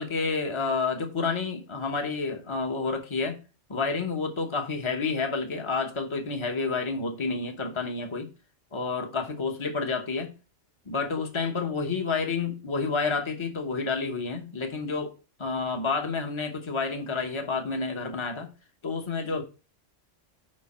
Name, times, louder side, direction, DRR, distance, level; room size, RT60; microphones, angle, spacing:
voice 1, 0.0-3.4 3.7-8.3 8.7-10.3 10.9-15.1 15.4-18.5 18.8-19.4, left 4 dB, 25° left, 1.0 m, -29 dB
6.5 x 5.2 x 4.3 m
omnidirectional pair, 1.3 m